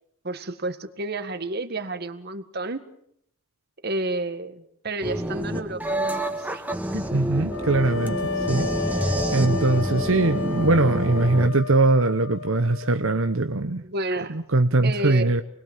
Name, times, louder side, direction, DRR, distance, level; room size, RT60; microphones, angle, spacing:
voice 1, 0.2-2.8 3.8-6.6 6.9-7.2 9.5-9.7 13.8-14.4 14.8-15.3, right 2 dB, 50° right, 1.9 m, -31 dB
sound 1, 5.0-11.5, right 1 dB, 10° right, 1.7 m, -28 dB
voice 2, 7.1-8.7 8.9-13.8 14.3-15.4, right 2 dB, 80° right, 1.0 m, -21 dB
sound 2, 7.5-13.4, left 4 dB, 85° left, 1.0 m, -32 dB
28.5 x 21.5 x 7.5 m
head